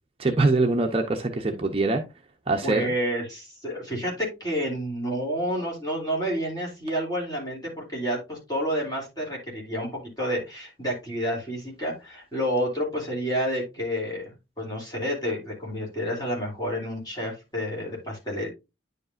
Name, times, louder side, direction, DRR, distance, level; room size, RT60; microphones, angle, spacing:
voice 1, 0.2-2.0 2.5-2.9, right 2 dB, 30° right, 0.6 m, -23 dB
voice 2, 1.3-1.9 2.6-18.5, equal, 20° left, 3.0 m, -30 dB
9.8 x 5.2 x 2.5 m
head